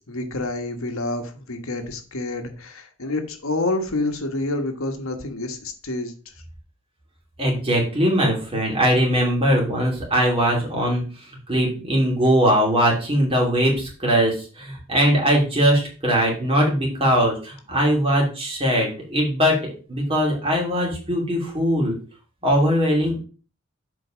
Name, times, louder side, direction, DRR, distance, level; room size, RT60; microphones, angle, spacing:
voice 1, 0.1-6.3, left 2 dB, 75° left, 5 dB, 1.4 m, -28 dB
voice 2, 7.4-11.0 11.5-22.0 22.4-23.1, equal, 25° right, -1 dB, 2.8 m, -20 dB
7.7 x 4.5 x 5.0 m, 0.38 s
head